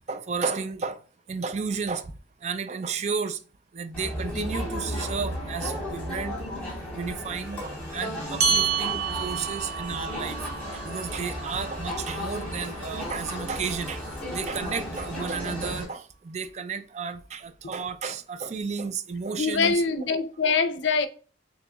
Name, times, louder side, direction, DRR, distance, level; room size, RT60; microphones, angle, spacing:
voice 1, 0.1-1.0 1.3-2.1 2.4-3.4 3.7-6.4 6.9-10.4 10.7-14.1 14.3-19.8, right 5 dB, 35° right, 0.3 m, -32 dB
Crowd, 3.9-15.8, equal, 5° left, 1.9 m, -34 dB
sound 1, 8.4-13.2, right 6 dB, 65° right, 0.7 m, -30 dB
voice 2, 19.3-21.1, left 4 dB, 80° left, 0.5 m, -24 dB
6.6 x 2.8 x 2.3 m
head